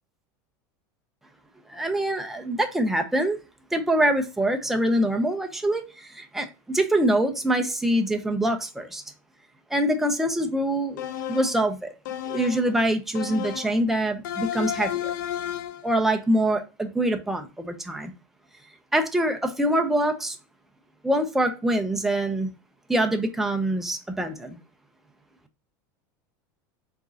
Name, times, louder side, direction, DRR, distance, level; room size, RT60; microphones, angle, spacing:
voice 1, 1.7-3.4 3.7-9.0 9.7-11.9 12.3-15.1 15.8-18.1 18.9-20.4 21.0-22.5 22.9-24.6, right 1 dB, 5° right, 0.5 m, -24 dB
sound 1, 11.0-11.6 12.0-12.7 13.1-13.8 14.2-15.9, left 11 dB, 80° left, 0.5 m, -32 dB
4.8 x 3.0 x 2.6 m
supercardioid pair, 170°, 10 cm